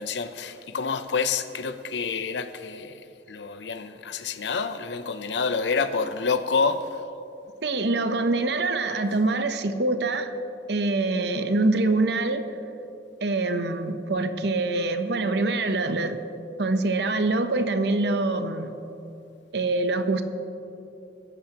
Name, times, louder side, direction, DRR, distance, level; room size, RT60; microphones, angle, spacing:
voice 1, 0.0-7.0, left 5 dB, 80° left, 0.7 m, -28 dB
voice 2, 7.6-10.3 10.7-12.5 13.2-16.2 16.6-18.7 19.5-20.2, right 2 dB, 70° right, 0.8 m, -24 dB
22.0 x 12.0 x 3.0 m
head